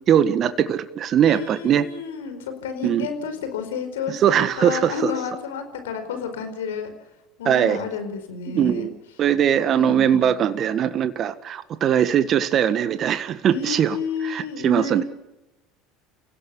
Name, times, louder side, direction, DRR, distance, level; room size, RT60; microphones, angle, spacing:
voice 1, 0.1-1.8 2.8-3.1 4.1-5.1 7.4-7.8 8.5-8.9 9.2-14.0 14.2-15.0, right 9 dB, 45° right, 11 dB, 1.6 m, -20 dB
voice 2, 1.2-6.9 7.4-8.9 9.8-10.3 13.5-15.0, left 5 dB, 80° left, 8 dB, 4.8 m, -31 dB
30.0 x 17.0 x 7.0 m, 0.97 s
hypercardioid pair, 75°, 0 cm